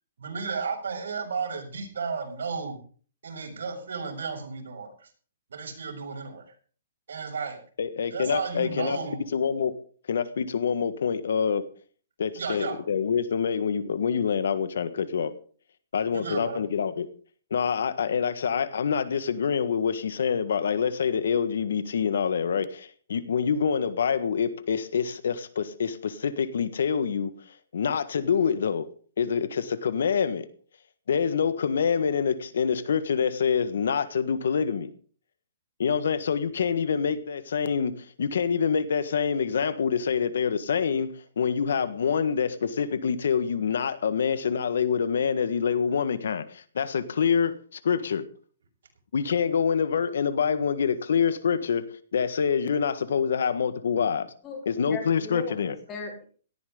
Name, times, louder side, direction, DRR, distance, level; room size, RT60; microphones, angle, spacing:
voice 1, 0.2-2.8 3.2-5.1 5.5-6.5 7.1-7.6 8.1-9.2 12.3-12.8 16.1-16.6, right 5 dB, 85° right, 6.6 m, -33 dB
voice 2, 7.8-9.0 9.3-9.7 10.1-11.6 12.2-15.3 15.9-17.1 17.5-27.3 27.7-28.9 29.2-30.5 31.1-34.9 35.8-48.2 49.1-51.8 52.1-54.3 54.6-55.7, left 6 dB, 75° left, 1.6 m, -26 dB
voice 3, 54.9-56.2, left 3 dB, 20° left, 4.4 m, -37 dB
18.0 x 14.0 x 3.9 m
hypercardioid pair, 165°, 0 cm